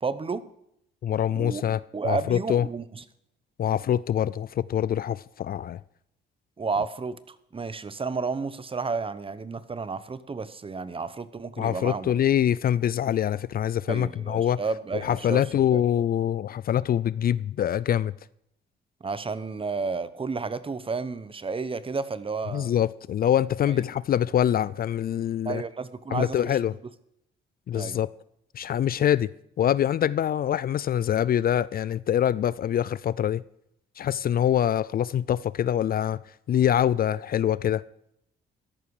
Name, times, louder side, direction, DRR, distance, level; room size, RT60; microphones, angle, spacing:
voice 1, 0.0-0.5 1.3-1.6 1.9-3.0 6.6-12.1 13.9-15.4 15.7-15.8 19.0-22.7 23.7-23.8 25.4-26.6 27.7-28.0, right 4 dB, 25° right, 0.9 m, -31 dB
voice 2, 1.0-1.8 2.0-2.7 3.6-5.8 11.6-14.6 14.9-18.1 22.5-25.6 26.1-26.7 27.7-28.1 28.5-29.3 29.6-33.4 34.0-36.2 36.5-37.8, left 10 dB, 50° left, 0.4 m, -24 dB
13.5 x 11.0 x 4.8 m
cardioid pair, 90°, 20 cm